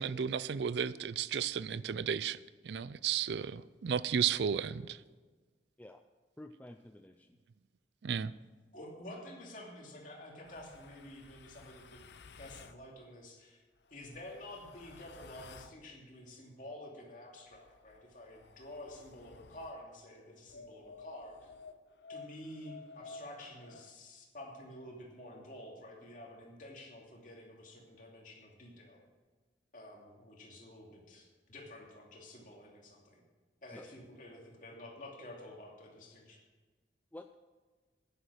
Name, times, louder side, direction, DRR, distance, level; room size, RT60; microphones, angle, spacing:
voice 1, 0.0-2.4 2.6-5.0 8.0-8.3, right 7 dB, 70° right, 0.4 m, -33 dB
voice 2, 6.4-7.4 33.7-33.9 37.1-37.3, left 1 dB, 10° left, 0.3 m, -50 dB
voice 3, 8.7-12.0 12.3-13.6 13.9-21.5 22.1-29.0 29.7-33.2 33.6-36.4, left 1 dB, 45° left, 2.7 m, -50 dB
sound 1, 10.4-12.8 13.8-15.8 17.5-19.8 20.5-23.9, left 4 dB, 70° left, 0.6 m, -54 dB
10.5 x 10.0 x 6.4 m
head